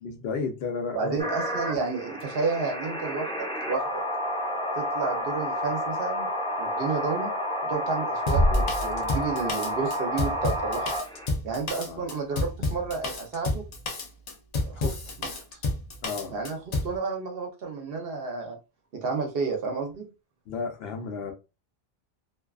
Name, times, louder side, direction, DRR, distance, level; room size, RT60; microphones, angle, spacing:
voice 1, 0.0-1.2 11.9-12.0 14.8-15.0 16.0-16.4 20.5-21.3, left 5 dB, 75° left, 0.9 m, -32 dB
voice 2, 0.9-3.9 4.8-6.3 6.6-7.3 7.6-10.9 11.4-13.6 14.7-14.9 15.2-15.3 16.3-18.6 18.9-20.1, right 4 dB, 70° right, 0.9 m, -31 dB
sound 1, 1.2-11.3, equal, 5° left, 0.6 m, -30 dB
Drum kit, 8.3-17.0, left 2 dB, 45° left, 0.6 m, -30 dB
sound 2, 8.3-10.0, equal, 40° right, 0.8 m, -26 dB
2.5 x 2.3 x 2.3 m
omnidirectional pair, 1.0 m